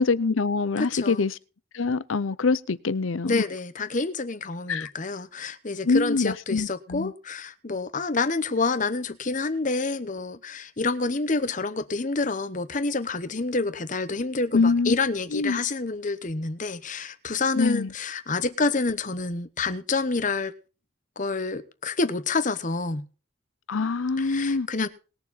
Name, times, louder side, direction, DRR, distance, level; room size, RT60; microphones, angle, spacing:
voice 1, 0.0-1.4 1.7-3.4 4.7-4.9 5.8-7.1 14.5-14.9 15.3-15.6 17.6-17.9 23.7-24.7, left 4 dB, 80° left, 0.7 m, -24 dB
voice 2, 0.8-1.2 3.3-20.5 21.2-23.1 24.2-24.9, left 3 dB, 40° left, 1.0 m, -28 dB
20.5 x 7.1 x 4.1 m
head